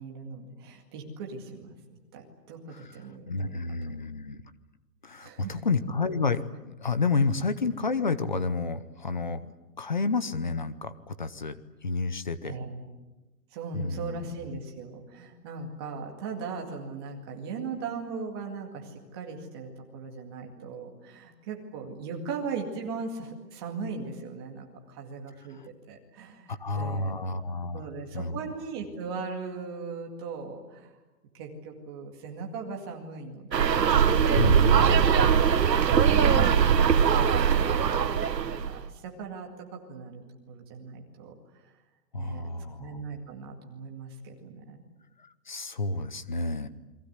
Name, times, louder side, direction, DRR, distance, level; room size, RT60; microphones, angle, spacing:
voice 1, 0.0-1.7 2.1-4.0 5.2-5.6 12.4-12.9 13.5-27.2 27.7-30.9 31.3-33.9 35.6-38.1 38.4-41.6 42.1-42.5 42.8-44.8, right 4 dB, 15° right, 1 dB, 2.2 m, -39 dB
voice 2, 3.3-4.4 5.0-9.5 9.8-11.6 11.8-12.5 13.7-14.3 25.5-25.7 26.5-27.9 28.1-28.4 34.4-35.6 42.1-43.0 45.2-46.7, left 4 dB, 30° left, 14 dB, 0.8 m, -30 dB
sound 1, 33.5-38.7, right 7 dB, 85° right, 1.8 m, -21 dB
29.5 x 22.5 x 8.1 m, 1.1 s
hypercardioid pair, 180°, 49 cm